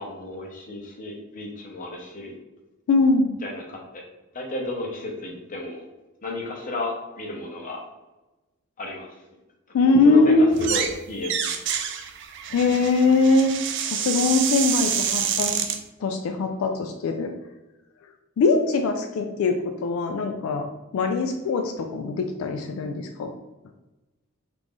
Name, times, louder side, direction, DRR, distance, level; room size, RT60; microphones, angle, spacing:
voice 1, 0.0-2.3 3.4-4.0 4.3-5.8 6.2-7.8 8.8-9.1 9.9-11.3, left 2 dB, 40° left, 0 dB, 0.7 m, -33 dB
voice 2, 2.9-3.4 9.7-10.7 12.5-13.6 13.8-15.6 16.0-17.3 18.4-20.7 20.9-23.3, left 3 dB, 80° left, 5 dB, 0.3 m, -21 dB
sound 1, 10.5-11.0 11.2-15.8, right 8 dB, 60° right, 0.4 m, -27 dB
3.1 x 2.5 x 3.5 m, 1.1 s
head